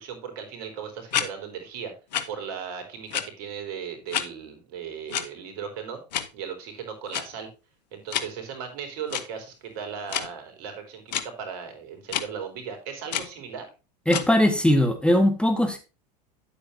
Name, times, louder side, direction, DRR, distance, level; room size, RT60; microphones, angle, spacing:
voice 1, 0.0-1.9 2.3-6.0 6.3-7.5 7.9-13.7, right 7 dB, 65° right, 6 dB, 4.0 m, -37 dB
sound 1, 1.1-1.3 2.1-2.2 3.1-3.2 4.1-4.2 5.1-5.3 6.1-6.3 7.1-7.2 8.1-8.3 9.1-9.2 10.1-10.3 11.1-11.2 12.1-12.2 13.1-13.3 14.1-14.3, left 9 dB, 85° left, 1.2 m, -27 dB
voice 2, 14.1-15.8, left 1 dB, 5° left, 6 dB, 1.8 m, -20 dB
10.5 x 8.5 x 2.8 m, 0.30 s
hypercardioid pair, 100°, 21 cm